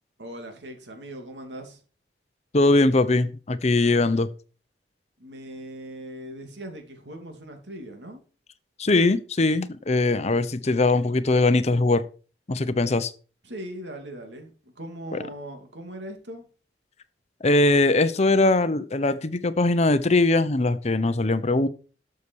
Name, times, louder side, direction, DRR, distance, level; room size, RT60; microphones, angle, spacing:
voice 1, 0.2-1.8 5.2-8.2 13.4-16.5, right 1 dB, 85° right, 2.9 m, -39 dB
voice 2, 2.5-4.3 8.8-12.0 12.5-13.1 15.1-15.2 17.4-21.7, left 2 dB, 40° left, 0.8 m, -21 dB
12.0 x 7.0 x 4.7 m
head